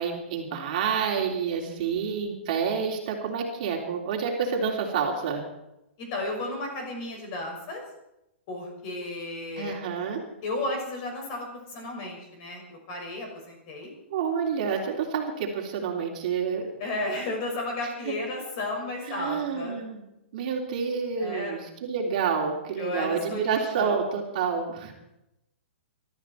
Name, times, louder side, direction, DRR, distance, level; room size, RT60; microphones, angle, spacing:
voice 1, 0.0-5.4 9.6-10.2 14.1-16.7 18.1-18.2 19.0-20.0 20.3-24.9, right 6 dB, 40° right, 1 dB, 3.3 m, -28 dB
voice 2, 6.0-7.8 8.5-9.8 10.4-13.9 16.8-19.8 21.2-21.6 22.8-23.9, left 2 dB, 30° left, 2 dB, 6.0 m, -33 dB
22.5 x 13.5 x 4.7 m, 0.86 s
hypercardioid pair, 170°, 7 cm